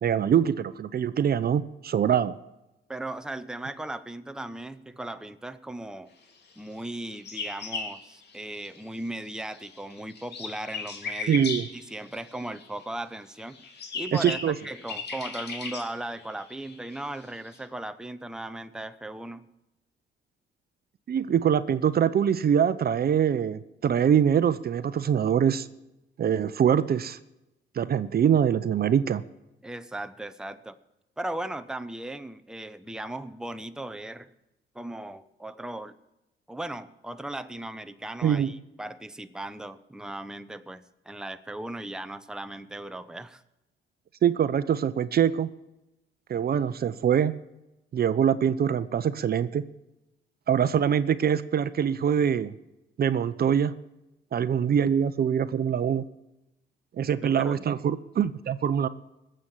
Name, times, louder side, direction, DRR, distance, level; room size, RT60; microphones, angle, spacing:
voice 1, 0.0-2.4 11.3-11.7 14.2-14.5 21.1-25.7 26.2-27.2 27.8-29.2 38.2-38.5 44.2-45.5 46.3-47.3 47.9-49.6 50.5-52.5 53.0-53.7 54.3-56.0 57.0-58.9, right 8 dB, 50° right, 13 dB, 0.8 m, -24 dB
voice 2, 2.9-6.1 6.6-11.4 11.7-13.6 13.9-19.5 29.6-30.8 31.2-34.3 34.7-36.0 36.5-43.4 57.2-57.6, right 1 dB, 5° right, 10 dB, 0.8 m, -37 dB
sound 1, 6.8-9.0 9.3-12.8 13.4-17.6, left 4 dB, 55° left, 2.9 m, -37 dB
20.0 x 7.8 x 7.3 m, 0.95 s
cardioid pair, 90°, 20 cm